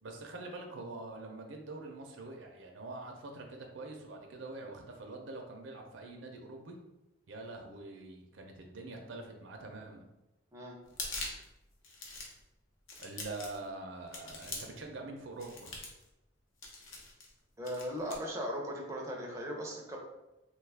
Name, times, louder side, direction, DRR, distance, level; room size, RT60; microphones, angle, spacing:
voice 1, 0.0-6.8 7.3-10.1 13.0-15.8, right 2 dB, 70° right, 3 dB, 0.5 m, -45 dB
sound 1, 10.9-11.5 11.8-12.4 12.9-13.7 14.1-14.8 15.4-16.0 16.6-17.3 17.6-18.2, left 3 dB, 85° left, 0.8 m, -42 dB
voice 2, 17.6-20.0, equal, 15° right, -1 dB, 0.4 m, -38 dB
3.0 x 2.3 x 3.3 m, 0.96 s
head